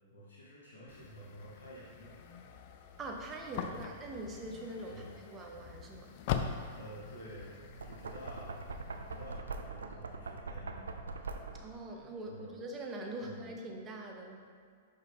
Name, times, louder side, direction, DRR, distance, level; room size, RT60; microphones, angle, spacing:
voice 1, 0.0-2.2 3.5-3.9 4.9-5.1 6.7-8.6 9.0-11.2 12.3-12.5 13.2-13.5, equal, 80° left, -7 dB, 1.4 m, -50 dB
sound 1, 0.9-9.4, left 8 dB, 50° left, 0.5 m, -43 dB
voice 2, 3.0-6.2 11.5-14.4, right 2 dB, 25° right, 1 dB, 1.0 m, -43 dB
Knock, 7.6-11.8, right 4 dB, 85° right, 0.5 m, -42 dB
5.8 x 5.3 x 3.6 m, 2.2 s
hypercardioid pair, 110°, 0 cm